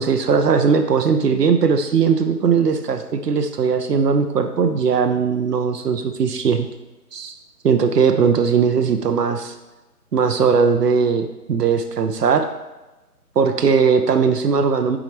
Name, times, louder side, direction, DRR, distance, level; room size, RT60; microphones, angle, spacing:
voice 1, 0.0-6.7 7.1-7.3 7.6-9.5 10.1-12.4 13.4-15.0, right 6 dB, 80° right, 6 dB, 0.7 m, -19 dB
7.0 x 4.9 x 3.3 m, 1.1 s
figure-of-eight pair, 170°, 48 cm